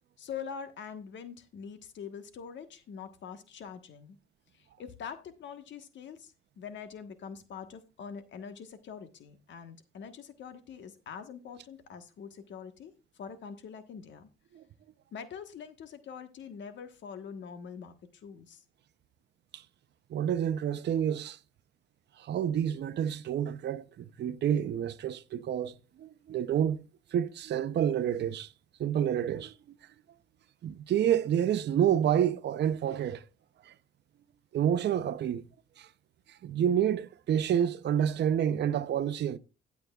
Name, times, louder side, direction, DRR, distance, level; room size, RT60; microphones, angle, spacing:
voice 1, 0.2-4.2 4.5-14.3 15.1-18.6, left 7 dB, 65° left, 1.4 m, -44 dB
voice 2, 20.1-21.4 22.2-26.8 27.1-28.5 28.8-29.5 30.6-33.2 33.7-33.8 34.5-35.4 35.8-35.9 36.3-39.4, right 9 dB, 60° right, 0.7 m, -29 dB
16.0 x 8.2 x 2.4 m
cardioid pair, 90°, 20 cm